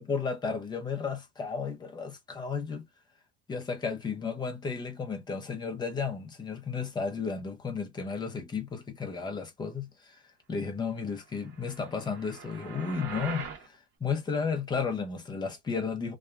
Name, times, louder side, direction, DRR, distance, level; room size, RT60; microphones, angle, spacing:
voice 1, 0.0-2.9 3.5-10.2 10.5-16.2, left 5 dB, 15° left, 0.6 m, -33 dB
sound 1, 11.4-13.7, right 6 dB, 35° right, 1.1 m, -42 dB
2.7 x 2.4 x 2.3 m
cardioid pair, 155°, 31 cm